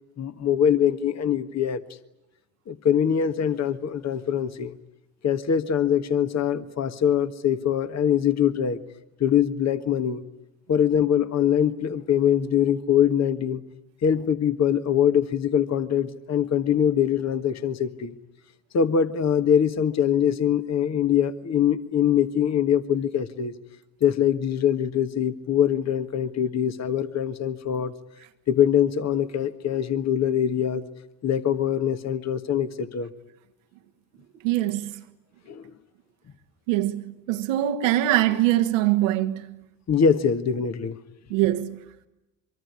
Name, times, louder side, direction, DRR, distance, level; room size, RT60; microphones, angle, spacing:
voice 1, 0.2-1.8 2.7-4.7 5.2-8.8 9.2-10.2 10.7-13.6 14.0-18.2 18.7-23.6 24.0-27.9 28.5-30.9 31.2-33.1 35.5-35.6 39.9-41.0, left 9 dB, 45° left, 1.6 m, -23 dB
voice 2, 34.4-35.0 36.7-39.4 41.3-41.8, right 14 dB, 85° right, 1.8 m, -23 dB
25.0 x 23.5 x 9.6 m
hypercardioid pair, 75°, 38 cm